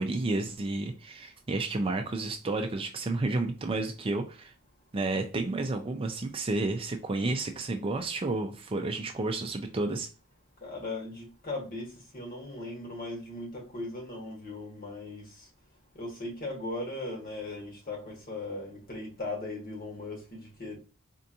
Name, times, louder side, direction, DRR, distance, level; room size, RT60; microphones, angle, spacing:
voice 1, 0.0-4.5 4.9-10.1, right 2 dB, 25° right, 0.4 m, -31 dB
voice 2, 10.6-15.2 15.9-20.8, left 2 dB, 40° left, 1.5 m, -38 dB
4.4 x 2.5 x 2.7 m
head